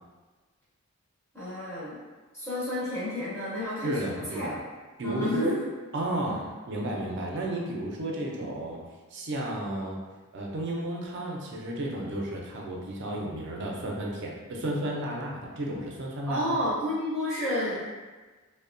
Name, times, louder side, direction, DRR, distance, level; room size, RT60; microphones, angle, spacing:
voice 1, 1.3-2.0 2.3-4.6 5.0-5.6 6.3-6.4 16.3-17.9, left 1 dB, 10° left, -10 dB, 0.6 m, -31 dB
voice 2, 3.8-4.5 5.0-5.5 5.9-6.4 6.7-8.8 9.1-10.0 10.3-16.5, right 1 dB, 55° right, -1 dB, 0.4 m, -32 dB
2.7 x 2.1 x 2.5 m, 1.3 s
head